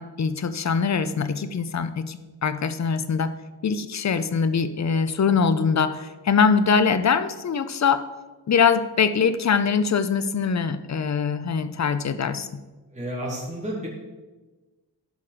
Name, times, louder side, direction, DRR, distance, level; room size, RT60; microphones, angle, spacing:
voice 1, 0.0-3.3 3.6-8.1 8.5-12.5, left 6 dB, 45° left, 12 dB, 0.7 m, -23 dB
voice 2, 12.9-13.9, right 1 dB, 15° right, -5 dB, 2.9 m, -31 dB
14.5 x 5.5 x 5.0 m, 1.2 s
wide cardioid pair, 110°, 40 cm